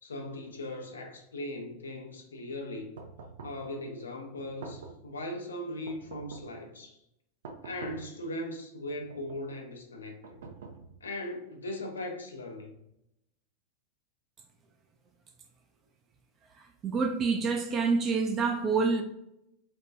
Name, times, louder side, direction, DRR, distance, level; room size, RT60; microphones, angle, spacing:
voice 1, 0.0-3.0 3.4-7.0 7.6-10.4 11.0-12.7, left 1 dB, 90° left, 0.7 m, -39 dB
sound 1, 3.0-3.7 4.4-5.1 5.9-6.6 7.4-8.2 8.9-9.5 10.2-11.1, right 4 dB, 75° right, 0.6 m, -46 dB
voice 2, 16.6-19.0, right 4 dB, 35° right, 0.4 m, -27 dB
4.3 x 2.2 x 2.7 m
hypercardioid pair, 100°, 0 cm